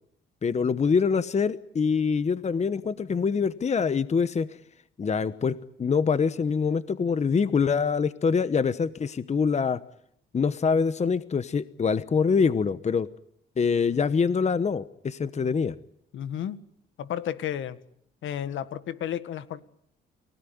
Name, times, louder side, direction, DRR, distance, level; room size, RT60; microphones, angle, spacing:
voice 1, 0.4-4.5 5.0-9.8 10.3-13.1 13.6-15.8, left 5 dB, 35° left, 14 dB, 1.1 m, -25 dB
voice 2, 16.1-16.6 17.0-17.8 18.2-19.6, left 10 dB, 75° left, 13 dB, 1.7 m, -32 dB
30.0 x 17.5 x 9.5 m, 0.72 s
cardioid pair, 90°, 20 cm